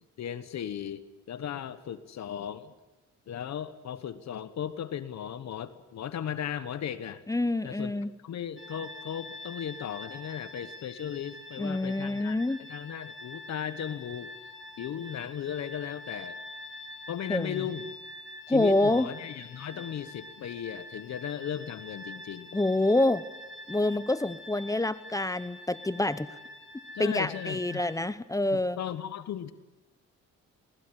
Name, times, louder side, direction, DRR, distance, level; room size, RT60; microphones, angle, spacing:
voice 1, 0.2-2.7 3.3-7.2 7.6-7.9 8.2-12.4 12.7-14.3 14.8-16.4 17.1-17.9 18.5-22.6 26.9-27.8 28.5-29.5, left 9 dB, 65° left, 13 dB, 1.3 m, -36 dB
voice 2, 7.3-8.1 11.6-12.6 17.3-17.6 18.5-19.1 22.5-23.2 23.7-26.4 27.0-28.8, left 2 dB, 10° left, 16 dB, 0.9 m, -27 dB
sound 1, 8.6-28.0, left 1 dB, 40° left, 3.5 m, -45 dB
20.0 x 20.0 x 9.9 m, 1.1 s
cardioid pair, 90°, 30 cm